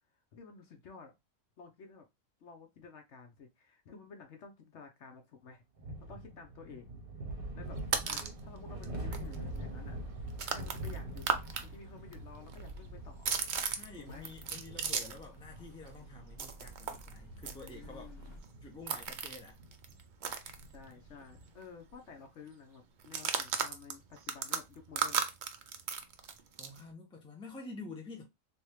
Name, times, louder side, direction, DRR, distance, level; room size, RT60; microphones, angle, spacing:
voice 1, 0.3-1.1 1.6-2.1 2.4-5.6 6.1-6.9 7.5-10.0 10.4-13.4 13.9-14.3 17.4-18.4 20.6-25.2, left 5 dB, 60° left, 1.0 m, -52 dB
sound 1, 5.8-21.6, right 1 dB, 45° right, 0.9 m, -45 dB
sound 2, 7.6-8.4 8.8-8.9 9.1-11.6 11.9-15.3 15.6-21.2 21.5-21.6 21.9-22.2 23.0-26.8, right 6 dB, 85° right, 0.4 m, -37 dB
sound 3, 9.2-18.4, equal, 45° left, 1.5 m, -54 dB
voice 2, 13.8-19.6 26.6-28.2, left 3 dB, 5° left, 0.6 m, -49 dB
3.4 x 2.7 x 3.0 m
omnidirectional pair, 1.5 m